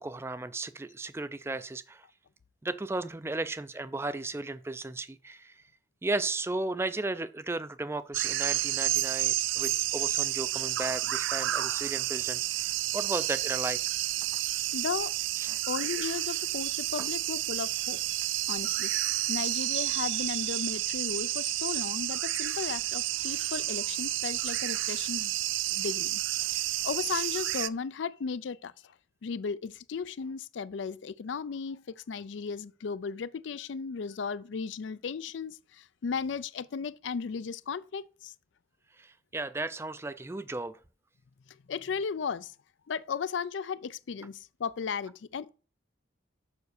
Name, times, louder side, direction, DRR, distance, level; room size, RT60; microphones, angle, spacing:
voice 1, 0.0-2.1 2.6-5.6 6.0-13.8 14.3-14.4 15.4-15.6 17.0-17.1 39.0-40.8, right 2 dB, 15° right, 0.3 m, -35 dB
sound 1, 8.1-27.7, right 16 dB, 85° right, 0.4 m, -30 dB
voice 2, 14.7-15.1 15.7-18.0 18.5-18.9 19.3-25.3 25.7-28.9 29.2-38.3 41.5-42.5 42.9-45.5, left 5 dB, 75° left, 0.4 m, -35 dB
7.0 x 5.3 x 6.6 m
head